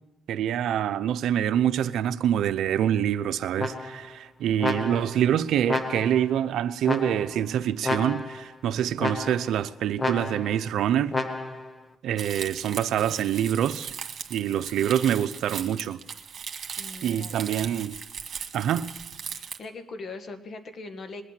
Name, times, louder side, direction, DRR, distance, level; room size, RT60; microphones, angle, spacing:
voice 1, 0.3-11.1 12.0-13.9 14.3-16.0 17.0-18.0 18.5-19.0, right 10 dB, 75° right, 0.6 m, -26 dB
sound 1, 3.6-4.1 4.6-5.2 5.7-6.3 6.8-7.4 7.8-8.5 9.0-9.6 10.0-10.6 11.1-11.7, left 2 dB, 25° left, 1.4 m, -31 dB
Crumpling crinkling, 12.2-19.6, right 7 dB, 55° right, 1.8 m, -38 dB
voice 2, 16.8-17.3 19.3-21.2, left 3 dB, 50° left, 1.7 m, -40 dB
21.0 x 8.8 x 7.4 m
cardioid pair, 90°, 0 cm